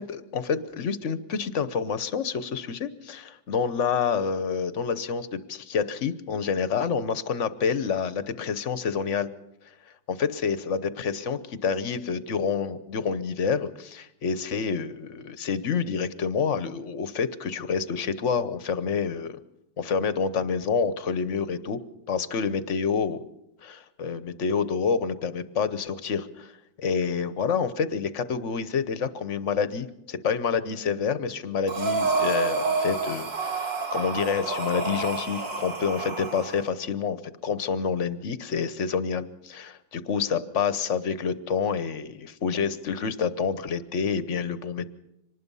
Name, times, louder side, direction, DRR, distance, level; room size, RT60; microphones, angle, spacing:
voice 1, 0.0-9.3 10.1-19.4 19.8-21.8 22.1-23.3 23.6-26.5 26.8-37.2 37.4-44.9, left 6 dB, 50° left, 14 dB, 1.0 m, -28 dB
Breathing, 31.7-36.6, right 3 dB, 65° right, 2.8 m, -28 dB
25.0 x 19.5 x 5.5 m, 0.85 s
omnidirectional pair, 2.1 m